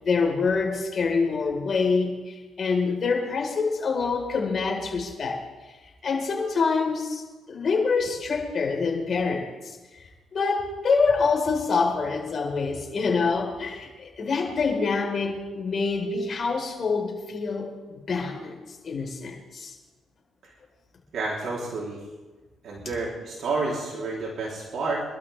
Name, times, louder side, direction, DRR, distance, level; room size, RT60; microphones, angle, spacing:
voice 1, 0.0-5.4 5.7-5.8 6.0-7.2 7.5-9.8 10.3-18.6 18.8-19.7, left 4 dB, 45° left, 0 dB, 4.7 m, -26 dB
voice 2, 21.1-22.0 22.6-25.0, right 3 dB, 65° right, -4 dB, 3.7 m, -30 dB
26.0 x 12.5 x 3.6 m, 1.2 s
cardioid pair, 90°, 0 cm